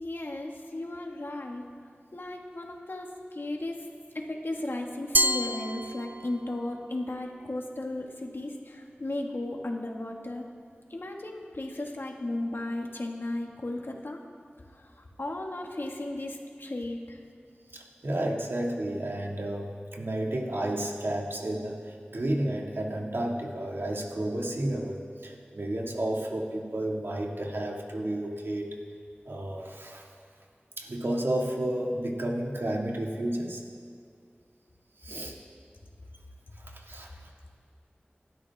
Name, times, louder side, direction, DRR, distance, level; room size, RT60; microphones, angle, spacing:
voice 1, 0.0-1.7 2.1-3.9 4.1-10.5 10.9-14.2 14.7-17.2, left 1 dB, 70° left, 1 dB, 1.9 m, -35 dB
Glass, 5.1-6.6, equal, 50° right, 0.5 m, -28 dB
voice 2, 17.7-28.7 29.3-30.0 30.8-33.6 35.0-35.3 36.6-37.1, right 1 dB, 80° right, -1 dB, 2.2 m, -31 dB
29.5 x 12.0 x 3.7 m, 2.3 s
wide cardioid pair, 60°, 4 cm